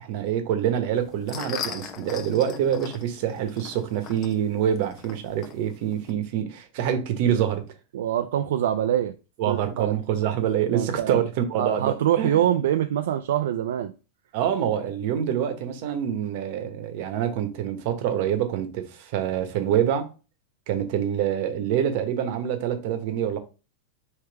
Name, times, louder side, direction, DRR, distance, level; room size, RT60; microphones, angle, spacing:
voice 1, 0.0-7.6 9.4-12.5 14.3-20.1 20.7-23.4, right 9 dB, 55° right, 1.0 m, -26 dB
sound 1, 0.9-6.1, left 7 dB, 35° left, 0.7 m, -39 dB
voice 2, 7.9-9.1 9.5-10.0 10.7-11.2 11.6-13.9, right 11 dB, 80° right, 0.4 m, -24 dB
3.4 x 3.3 x 4.6 m
supercardioid pair, 135°, 0 cm